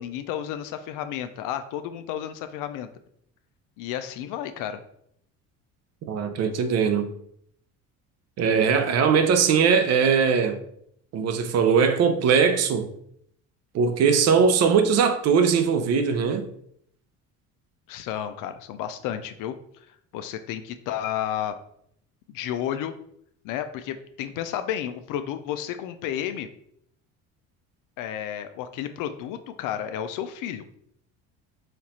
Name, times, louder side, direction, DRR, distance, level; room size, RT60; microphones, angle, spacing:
voice 1, 0.0-2.9 3.8-4.8 17.9-19.5 20.1-21.6 22.3-22.9 23.4-26.5 28.0-30.7, left 10 dB, 70° left, 0.5 m, -32 dB
voice 2, 6.1-7.1 8.4-10.6 11.1-12.9 13.7-16.5, right 6 dB, 50° right, 0.6 m, -20 dB
4.4 x 2.5 x 4.1 m
cardioid pair, 110°, 32 cm